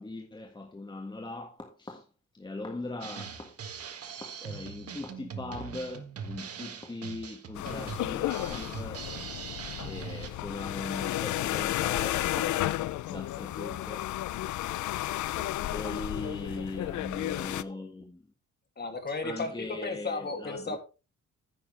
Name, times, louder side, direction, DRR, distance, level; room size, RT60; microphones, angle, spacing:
voice 1, 0.0-2.0 2.3-3.6 4.2-9.0 9.8-12.6 13.1-14.1 15.3-18.3 19.2-20.8, left 2 dB, 15° left, 1.7 m, -40 dB
Drum kit, 3.0-10.3, right 7 dB, 50° right, 1.5 m, -41 dB
sound 1, 7.6-17.6, left 15 dB, 75° left, 0.5 m, -33 dB
voice 2, 18.8-20.8, left 3 dB, 35° left, 2.5 m, -34 dB
10.5 x 9.4 x 3.3 m
cardioid pair, 90°, 30 cm